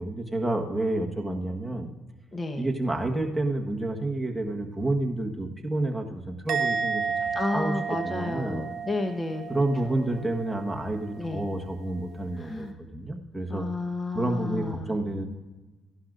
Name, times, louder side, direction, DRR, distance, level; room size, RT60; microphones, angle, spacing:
voice 1, 0.0-1.9 2.6-7.8 8.0-8.6 9.5-13.7 14.1-15.3, right 2 dB, 5° right, 0 dB, 1.4 m, -29 dB
voice 2, 2.3-2.7 7.3-10.2 11.2-11.5 12.4-12.7 13.5-15.0, left 2 dB, 30° left, 5 dB, 1.2 m, -32 dB
Musical instrument, 6.5-9.9 10.1-10.6, right 5 dB, 75° right, 1.0 m, -31 dB
16.5 x 11.5 x 2.6 m, 1.2 s
supercardioid pair, 80°, 0 cm